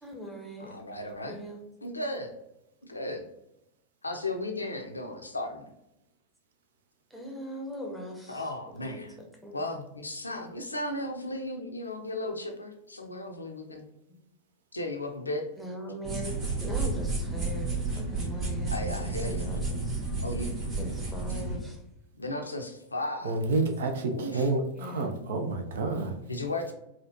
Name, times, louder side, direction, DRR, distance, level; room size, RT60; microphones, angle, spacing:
voice 1, 0.0-0.8 1.3-1.7 7.1-8.5 8.8-9.0 9.4-9.6 14.1-14.2 15.6-20.0 20.7-21.8 24.7-25.2, equal, 5° right, 1 dB, 0.9 m, -40 dB
voice 2, 0.6-1.4 1.8-2.3 2.9-3.2 4.0-5.6 8.3-9.1 9.5-13.8 14.7-15.5 18.7-19.5 20.2-20.5 22.2-23.5 24.1-24.5 26.3-26.7, left 1 dB, 80° left, 3 dB, 0.5 m, -35 dB
sound 1, 16.0-21.6, right 3 dB, 30° right, 1.2 m, -31 dB
voice 3, 23.2-26.1, right 3 dB, 60° right, 5 dB, 0.5 m, -29 dB
4.2 x 2.3 x 2.8 m, 0.84 s
figure-of-eight pair, 90°, 0 cm